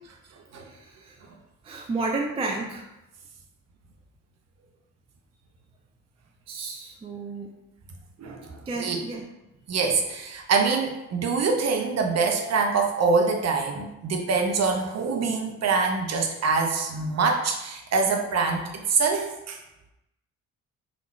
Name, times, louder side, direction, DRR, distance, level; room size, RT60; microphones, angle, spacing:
voice 1, 0.5-1.3 1.6-2.9 6.5-7.5 8.7-9.3, right 3 dB, 15° right, 1 dB, 0.3 m, -32 dB
voice 2, 9.7-19.6, right 4 dB, 40° right, 2 dB, 0.7 m, -25 dB
3.6 x 2.4 x 3.1 m, 0.95 s
figure-of-eight pair, 45°, 43 cm